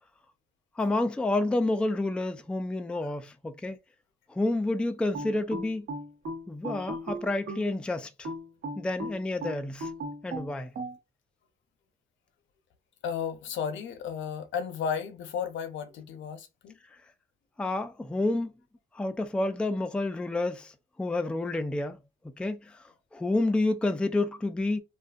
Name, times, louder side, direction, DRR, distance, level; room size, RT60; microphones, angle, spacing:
voice 1, 0.8-3.8 4.3-5.9 6.5-8.3 8.8-9.9 10.2-10.7 17.6-18.5 18.9-20.7 21.0-22.0 22.4-22.8 23.1-24.8, left 2 dB, 5° left, 0.3 m, -29 dB
sound 1, 5.1-7.7 8.2-11.0, right 1 dB, 70° right, 1.0 m, -36 dB
voice 2, 13.0-16.7, left 7 dB, 75° left, 0.6 m, -33 dB
2.5 x 2.4 x 2.3 m
cardioid pair, 90°, 20 cm